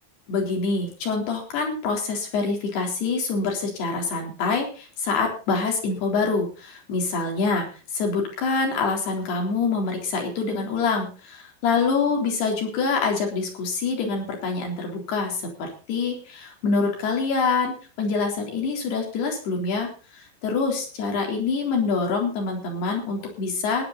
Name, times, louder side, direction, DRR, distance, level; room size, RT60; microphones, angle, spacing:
voice 1, 0.3-7.7 7.9-19.9 20.2-23.9, left 4 dB, 75° left, 1 dB, 5.9 m, -25 dB
16.5 x 11.0 x 4.2 m, 0.37 s
omnidirectional pair, 4.7 m